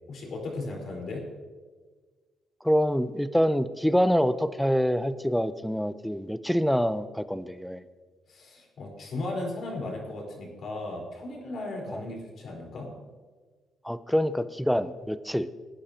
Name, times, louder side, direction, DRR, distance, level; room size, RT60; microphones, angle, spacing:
voice 1, 0.1-1.3 8.3-13.0, left 2 dB, 60° left, -1 dB, 4.5 m, -36 dB
voice 2, 2.6-7.8 11.9-12.0 13.8-15.5, equal, ahead, 13 dB, 0.6 m, -26 dB
20.0 x 10.5 x 2.9 m, 1.4 s
cardioid pair, 90°, 0 cm